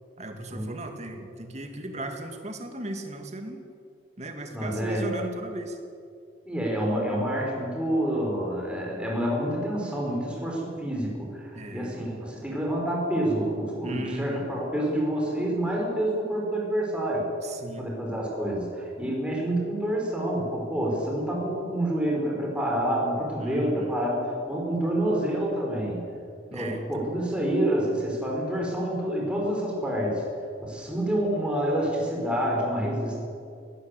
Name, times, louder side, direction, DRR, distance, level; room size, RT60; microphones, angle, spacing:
voice 1, 0.2-3.6 4.2-5.8 11.5-11.9 13.8-14.5 17.4-17.8 23.4-23.9 26.5-26.8, right 1 dB, 35° right, 5 dB, 2.4 m, -36 dB
voice 2, 4.5-5.1 6.5-17.2 17.8-26.0 26.5-30.2 30.6-33.2, right 1 dB, 5° right, -2 dB, 5.3 m, -28 dB
21.0 x 18.0 x 8.4 m, 2.4 s
head